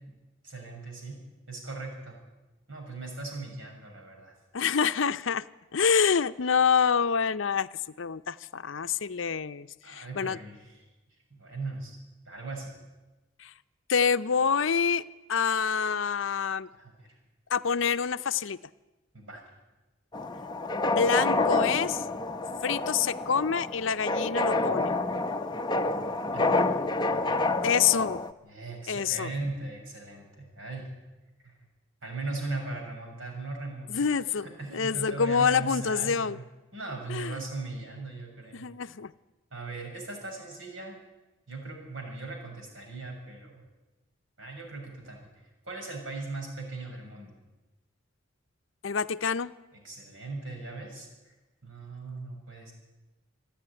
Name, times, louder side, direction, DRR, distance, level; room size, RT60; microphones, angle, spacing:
voice 1, 0.4-1.2 1.5-2.2 2.7-4.3 9.8-10.8 11.4-12.0 12.2-12.7 16.7-17.1 19.1-19.4 26.3-26.7 28.4-30.9 31.4-31.5 32.0-34.2 34.4-36.4 36.7-38.7 39.5-41.0 41.5-43.6 44.4-47.3 49.7-51.3 51.6-52.7, right 3 dB, 75° right, 2 dB, 6.6 m, -39 dB
voice 2, 4.5-5.5 5.7-7.7 8.0-10.4 13.4-13.5 13.9-15.0 15.3-16.7 17.5-18.6 20.9-22.0 22.6-25.0 27.6-28.2 28.9-29.3 33.9-34.5 34.7-36.4 37.1-37.5 38.5-39.1 48.8-49.5, left 6 dB, 70° left, 14 dB, 0.6 m, -26 dB
sound 1, 20.1-28.3, left 2 dB, 20° left, 0.7 m, -28 dB
27.5 x 10.0 x 10.0 m, 1.1 s
head